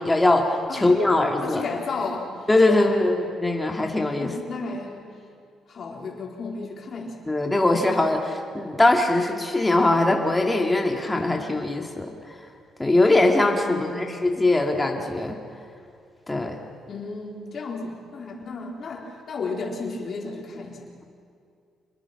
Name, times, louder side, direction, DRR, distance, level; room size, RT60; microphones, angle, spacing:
voice 1, 0.0-1.6 2.5-4.3 7.3-12.1 12.8-15.4 16.3-16.6, left 2 dB, 15° left, 1 dB, 2.4 m, -21 dB
voice 2, 1.4-3.2 4.2-5.1 5.7-7.2 7.6-7.9 13.6-14.1 16.9-20.9, left 3 dB, 50° left, 0 dB, 4.2 m, -33 dB
27.5 x 21.0 x 6.1 m, 2.4 s
cardioid pair, 90°, 0 cm